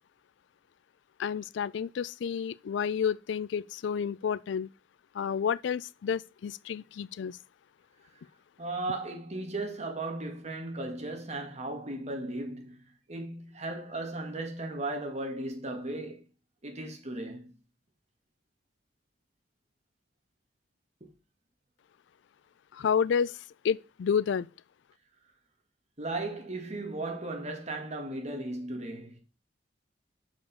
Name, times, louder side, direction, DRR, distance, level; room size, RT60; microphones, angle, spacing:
voice 1, 1.2-4.7 5.1-7.4 22.7-23.4 23.6-24.5, left 7 dB, 75° left, 0.3 m, -30 dB
voice 2, 8.6-12.8 13.1-16.2 16.6-17.5 21.0-21.1 26.0-29.2, right 2 dB, 40° right, 1.7 m, -36 dB
6.6 x 4.9 x 5.3 m
head